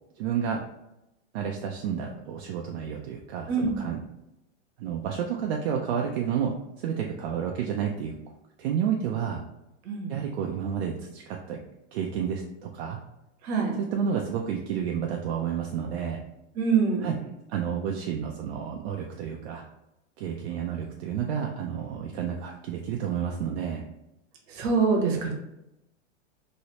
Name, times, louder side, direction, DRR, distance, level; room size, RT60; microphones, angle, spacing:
voice 1, 0.2-0.6 1.3-4.0 4.8-8.1 8.6-9.4 10.1-11.6 11.9-13.0 13.9-16.2 17.0-17.2 17.5-19.6 20.2-23.8, right 8 dB, 60° right, 1 dB, 0.5 m, -30 dB
voice 2, 3.5-3.8 9.9-10.1 13.4-13.7 16.5-17.1 24.5-25.3, right 5 dB, 40° right, 0 dB, 0.9 m, -24 dB
3.1 x 2.7 x 2.8 m, 0.90 s
hypercardioid pair, 135°, 36 cm